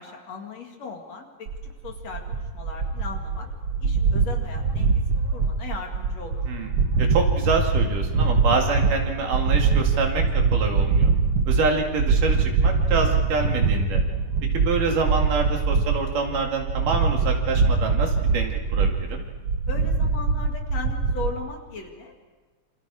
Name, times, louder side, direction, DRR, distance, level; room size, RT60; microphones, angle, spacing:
voice 1, 0.0-1.5 1.8-3.5 3.8-6.4 19.7-22.3, left 4 dB, 55° left, 2 dB, 3.2 m, -38 dB
sound 1, 1.5-21.3, right 4 dB, 50° right, 2.1 m, -23 dB
voice 2, 7.0-10.2 10.5-11.1 11.5-14.0 14.5-19.3, right 4 dB, 70° right, 2 dB, 3.9 m, -26 dB
27.5 x 27.0 x 4.9 m, 1.3 s
omnidirectional pair, 3.9 m